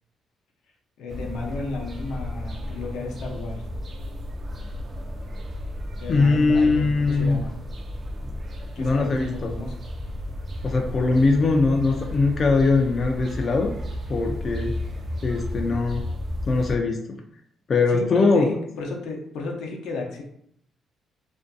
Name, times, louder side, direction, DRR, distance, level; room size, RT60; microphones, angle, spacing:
voice 1, 1.0-3.7 6.0-7.5 8.8-9.7 10.9-11.2 17.9-20.2, left 3 dB, 85° left, 0 dB, 0.6 m, -33 dB
sound 1, 1.1-16.8, left 1 dB, 40° right, 0.4 m, -33 dB
voice 2, 6.1-7.4 8.8-9.5 10.6-13.7 14.1-14.7 15.2-16.0 16.5-17.2 17.7-18.5, left 3 dB, 45° left, 2 dB, 0.3 m, -21 dB
2.5 x 2.2 x 2.5 m, 0.69 s
cardioid pair, 90°, 0 cm